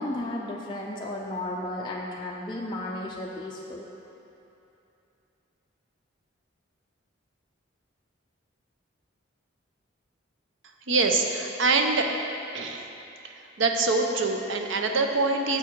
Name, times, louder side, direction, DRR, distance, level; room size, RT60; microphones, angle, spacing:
voice 1, 0.0-3.9, left 1 dB, 25° left, -3 dB, 0.4 m, -33 dB
voice 2, 10.9-12.1 12.5-12.8 13.3-15.6, right 3 dB, 70° right, 4 dB, 0.6 m, -24 dB
7.1 x 7.0 x 4.5 m, 2.8 s
head